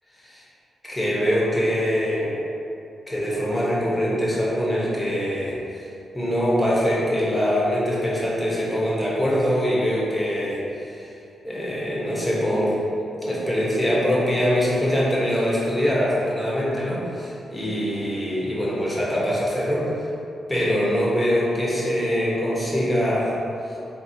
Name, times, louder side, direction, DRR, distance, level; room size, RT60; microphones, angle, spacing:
voice 1, 0.8-2.3 3.1-5.8 6.1-11.1 11.4-12.8 13.2-19.9 20.5-23.3, equal, 10° left, -7 dB, 1.2 m, -23 dB
4.3 x 2.7 x 2.8 m, 2.7 s
supercardioid pair, 55°, 0 cm